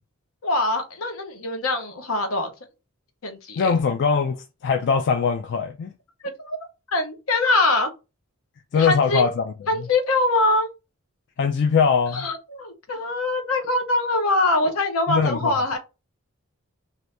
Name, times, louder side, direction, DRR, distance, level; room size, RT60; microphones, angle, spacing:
voice 1, 0.4-2.5 3.2-3.8 6.4-6.6 6.9-7.9 8.7-9.3 9.7-10.7 12.1-15.8, left 2 dB, 85° left, 0.9 m, -23 dB
voice 2, 3.6-4.4 4.6-5.9 8.7-9.5 11.4-12.3 15.1-15.6, left 5 dB, 55° left, 0.3 m, -21 dB
2.7 x 2.6 x 3.2 m
head